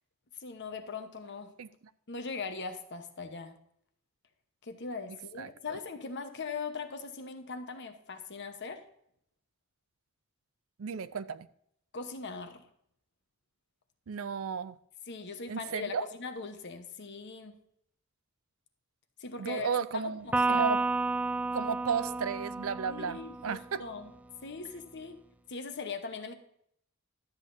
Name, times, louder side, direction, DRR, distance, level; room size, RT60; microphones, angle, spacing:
voice 1, 0.4-1.5 2.1-3.6 4.6-8.8 11.9-12.6 15.1-17.5 19.2-20.7 22.9-24.1 24.4-25.2 25.5-26.3, left 4 dB, 55° left, 1.0 m, -40 dB
voice 2, 10.8-11.5 14.1-14.8 15.5-16.0 19.4-20.8 21.5-23.8, right 6 dB, 75° right, 0.5 m, -34 dB
Electric guitar, 20.3-23.9, right 3 dB, 5° right, 0.3 m, -31 dB
12.5 x 8.1 x 2.7 m
head